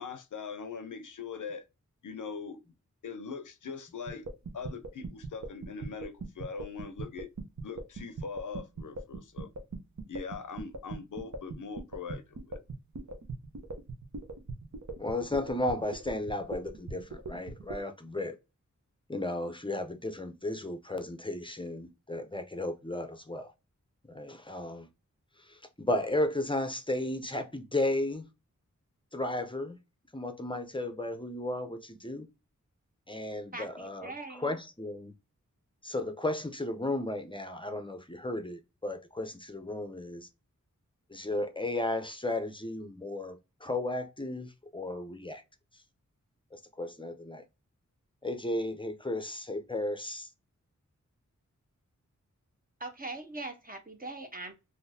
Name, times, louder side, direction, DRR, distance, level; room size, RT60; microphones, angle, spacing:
voice 1, 0.0-1.7 2.0-2.6 3.0-4.3 4.5-7.3 7.6-9.5 10.1-12.6, left 5 dB, 75° left, 0.5 m, -41 dB
sound 1, 4.1-17.8, right 3 dB, 65° right, 0.8 m, -39 dB
voice 2, 15.0-18.4 19.1-23.5 24.1-24.9 25.4-28.3 29.1-29.8 30.1-32.3 33.1-35.1 35.8-40.3 41.1-45.4 46.5-47.4 48.2-50.3, left 1 dB, 15° left, 0.6 m, -34 dB
voice 3, 33.5-34.6 52.8-54.5, right 2 dB, 30° right, 0.9 m, -41 dB
3.8 x 2.7 x 2.7 m
wide cardioid pair, 55°, 31 cm